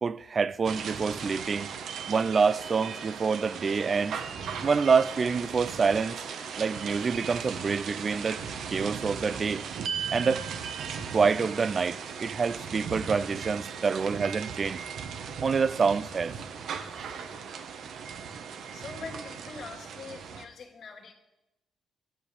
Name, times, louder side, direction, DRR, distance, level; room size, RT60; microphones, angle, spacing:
voice 1, 0.0-1.7 2.1-4.2 4.6-6.2 6.6-8.4 8.7-9.6 10.1-10.4 11.1-14.8 15.4-16.3, right 5 dB, 40° right, 0.4 m, -27 dB
sound 1, 0.6-20.5, right 6 dB, 70° right, 1.0 m, -37 dB
voice 2, 18.7-21.1, left 4 dB, 60° left, 2.2 m, -43 dB
11.0 x 6.7 x 8.5 m
cardioid pair, 90°, 0 cm